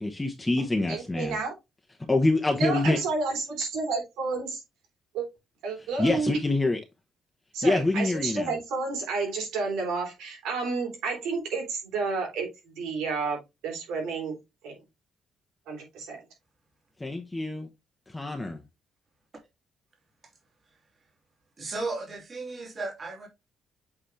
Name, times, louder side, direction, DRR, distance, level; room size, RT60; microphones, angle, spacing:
voice 1, 0.0-1.4 2.1-3.0 6.0-6.8 7.6-8.5 17.0-17.7 18.1-18.6, left 2 dB, 15° left, 1.1 m, -25 dB
voice 2, 0.9-1.5 2.5-4.6 5.1-5.3 5.6-6.4 7.5-14.4 14.6-14.8 15.7-16.2, right 4 dB, 90° right, 3.3 m, -31 dB
voice 3, 21.6-23.3, right 3 dB, 35° right, 2.6 m, -35 dB
7.9 x 4.2 x 3.2 m
cardioid pair, 90°, 0 cm